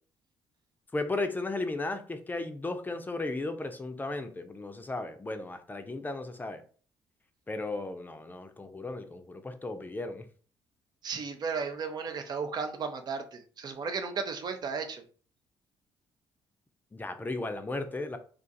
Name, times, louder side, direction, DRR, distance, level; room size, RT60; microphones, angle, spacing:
voice 1, 0.9-6.6 7.5-10.3 16.9-18.2, left 2 dB, 20° left, 7 dB, 0.6 m, -35 dB
voice 2, 11.0-15.0, right 5 dB, 50° right, 7 dB, 0.7 m, -34 dB
2.5 x 2.4 x 4.0 m, 0.42 s
supercardioid pair, 65°, 9 cm